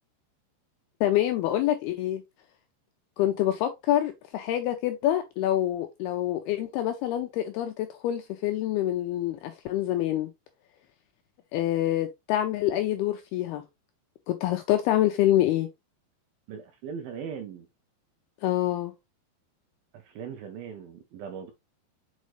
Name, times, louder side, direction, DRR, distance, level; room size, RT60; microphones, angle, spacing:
voice 1, 1.0-2.2 3.2-10.3 11.5-13.6 14.3-15.7 18.4-18.9, left 13 dB, 90° left, 2.3 m, -26 dB
voice 2, 16.5-17.7 20.1-21.5, right 7 dB, 75° right, 2.2 m, -39 dB
6.5 x 5.2 x 3.1 m
omnidirectional pair, 5.2 m